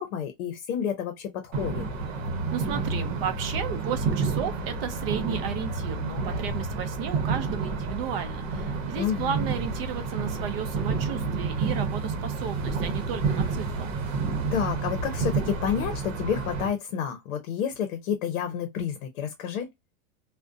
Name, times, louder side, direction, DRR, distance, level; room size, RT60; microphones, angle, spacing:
voice 1, 0.0-1.9 9.0-9.4 14.5-19.7, left 8 dB, 70° left, 0.7 m, -30 dB
sound 1, 1.5-16.7, right 4 dB, 70° right, 0.9 m, -30 dB
voice 2, 2.5-13.9, right 8 dB, 45° right, 0.5 m, -33 dB
2.4 x 2.1 x 2.5 m
supercardioid pair, 170°, 41 cm